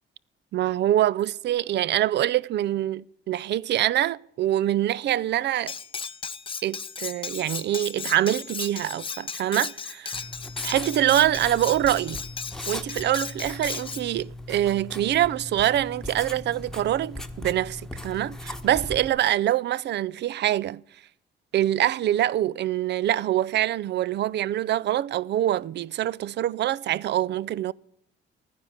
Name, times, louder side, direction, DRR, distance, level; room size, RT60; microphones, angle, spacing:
voice 1, 0.5-5.7 6.6-10.2 10.6-12.2 12.7-20.8 21.5-27.7, right 12 dB, 60° right, 0.5 m, -25 dB
Cutlery silverware, 5.7-14.1, left 5 dB, 25° left, 0.5 m, -35 dB
Writing, 10.1-19.1, left 1 dB, 5° left, 1.2 m, -39 dB
14.0 x 9.8 x 6.5 m
cardioid pair, 90°, 20 cm